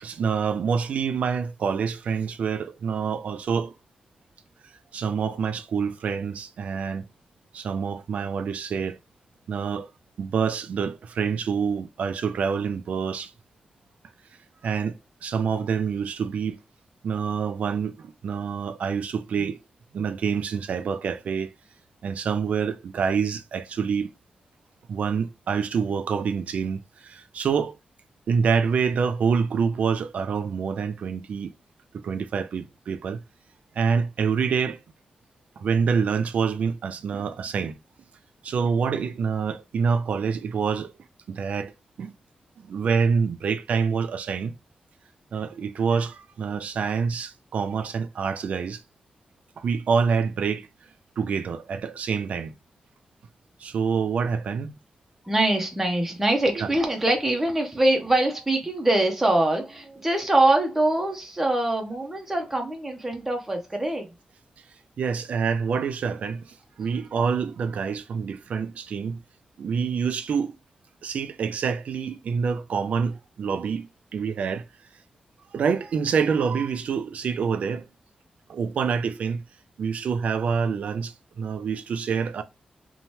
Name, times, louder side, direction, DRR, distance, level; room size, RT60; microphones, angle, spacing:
voice 1, 0.0-3.7 4.9-7.0 7.5-9.0 9.5-9.9 10.2-13.3 14.6-16.6 17.0-19.6 19.9-21.5 22.0-24.1 24.9-27.8 28.3-31.5 31.9-33.2 33.7-34.8 35.6-37.8 38.4-40.9 41.3-41.7 42.0-42.1 42.6-44.5 45.3-48.8 49.6-50.7 51.2-52.5 53.6-54.7 56.6-56.7 65.0-69.2 69.6-70.5 71.0-73.9 74.1-74.7 75.5-77.8 78.5-79.4 79.8-82.4, right 6 dB, 75° right, 0.4 m, -26 dB
voice 2, 55.2-64.1, right 1 dB, 10° right, 0.6 m, -23 dB
2.7 x 2.1 x 3.0 m
wide cardioid pair, 155°, 2 cm